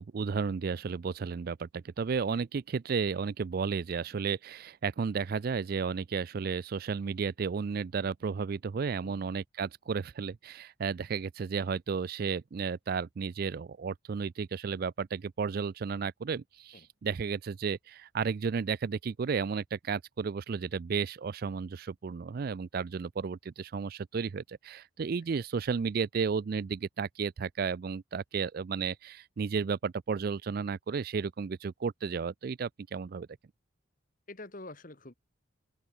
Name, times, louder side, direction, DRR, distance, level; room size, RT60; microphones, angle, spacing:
voice 1, 0.0-33.3, right 5 dB, 45° right, 0.4 m, -33 dB
voice 2, 34.3-35.1, left 2 dB, 40° left, 1.7 m, -46 dB
open air
head